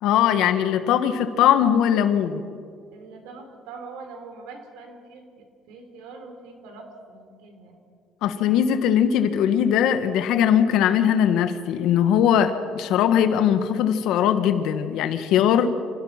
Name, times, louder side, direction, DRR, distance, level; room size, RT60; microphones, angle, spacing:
voice 1, 0.0-2.4 8.2-15.7, left 9 dB, 75° left, 9 dB, 1.6 m, -20 dB
voice 2, 2.9-7.8, right 4 dB, 85° right, 5 dB, 3.9 m, -43 dB
27.0 x 17.0 x 5.9 m, 2.2 s
cardioid pair, 110°, 0 cm